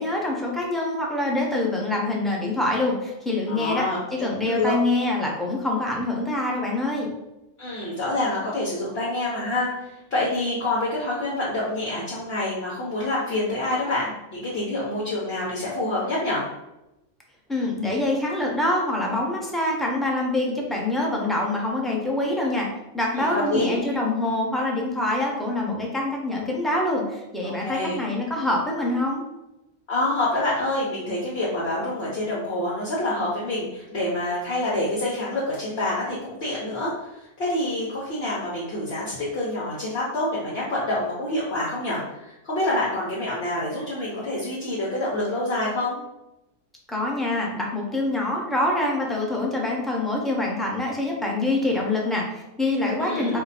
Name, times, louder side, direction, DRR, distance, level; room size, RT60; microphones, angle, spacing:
voice 1, 0.0-3.9 4.1-7.1 17.5-22.7 22.9-29.2 46.9-53.4, left 2 dB, ahead, -2 dB, 0.6 m, -25 dB
voice 2, 3.5-4.8 7.6-16.4 23.1-23.8 27.4-28.0 29.9-46.0 53.0-53.4, left 2 dB, 60° left, -7 dB, 1.2 m, -27 dB
4.8 x 2.2 x 4.0 m, 0.94 s
omnidirectional pair, 1.2 m